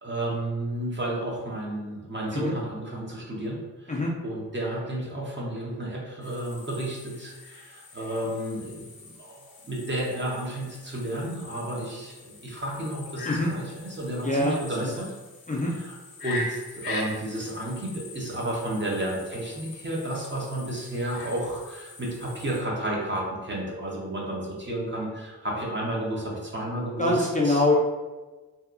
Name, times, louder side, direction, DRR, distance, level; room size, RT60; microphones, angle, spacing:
voice 1, 0.0-15.1 15.6-27.6, right 1 dB, 30° right, -4 dB, 0.8 m, -32 dB
sound 1, 6.2-22.6, left 2 dB, 80° left, 0.6 m, -42 dB
voice 2, 14.2-14.6 15.5-15.7 27.0-27.7, left 2 dB, 25° left, -4 dB, 0.4 m, -23 dB
2.7 x 2.3 x 2.4 m, 1.2 s
wide cardioid pair, 60°, 35 cm